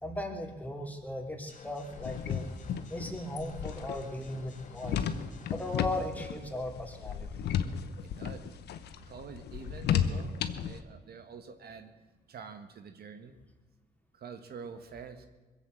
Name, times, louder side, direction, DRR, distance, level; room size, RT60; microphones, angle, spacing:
voice 1, 0.0-2.5 2.9-5.1 5.5-7.3, left 1 dB, 10° left, 2 dB, 3.0 m, -37 dB
sound 1, 1.5-5.9, left 4 dB, 50° left, 1.7 m, -54 dB
sound 2, 1.9-10.8, left 8 dB, 85° left, 0.9 m, -34 dB
voice 2, 8.0-8.5 9.0-11.9 12.3-13.4 14.1-15.3, right 6 dB, 70° right, 8 dB, 1.4 m, -47 dB
21.0 x 8.2 x 7.8 m, 1.3 s
cardioid pair, 70°, 17 cm